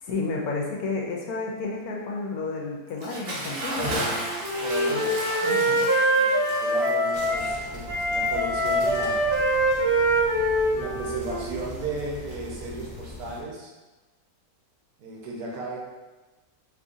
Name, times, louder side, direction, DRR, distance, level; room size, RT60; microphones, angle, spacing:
voice 1, 0.0-4.3 4.9-5.0 5.4-5.9, left 3 dB, 75° left, -1 dB, 1.1 m, -31 dB
Bathtub (filling or washing) / Splash splatter, 2.9-8.8, right 1 dB, 55° right, 1.1 m, -34 dB
Wind instrument woodwind instrument, 3.9-7.5 7.9-11.6, right 1 dB, 20° right, 0.8 m, -24 dB
voice 2, 4.6-5.2 6.1-9.2 10.7-13.7 15.0-15.8, right 3 dB, 75° right, -2 dB, 1.2 m, -35 dB
sound 1, 7.1-13.4, left 2 dB, 15° left, 0.7 m, -41 dB
3.0 x 2.6 x 3.6 m, 1.2 s
omnidirectional pair, 1.7 m